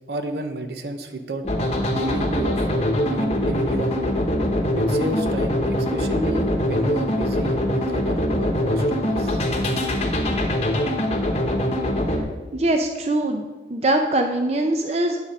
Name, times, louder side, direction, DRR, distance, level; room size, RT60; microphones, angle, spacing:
voice 1, 0.1-1.4 1.9-4.2 4.7-9.4, right 2 dB, 65° right, 7 dB, 0.8 m, -31 dB
sound 1, 1.4-12.2, left 1 dB, 35° left, 1.0 m, -23 dB
voice 2, 12.5-15.2, right 1 dB, 35° right, 4 dB, 0.5 m, -22 dB
9.5 x 4.2 x 6.4 m, 1.2 s
head